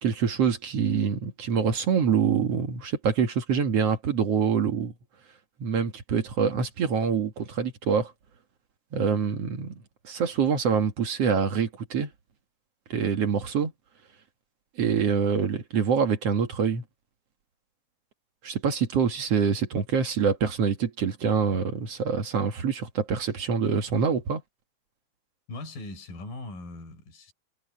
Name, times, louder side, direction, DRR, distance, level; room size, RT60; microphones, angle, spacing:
voice 1, 0.0-4.9 5.6-8.1 8.9-12.1 12.9-13.7 14.8-16.8 18.4-24.4, right 6 dB, 50° right, 2.3 m, -25 dB
voice 2, 25.5-27.3, left 2 dB, 70° left, 7.2 m, -40 dB
omnidirectional pair, 4.1 m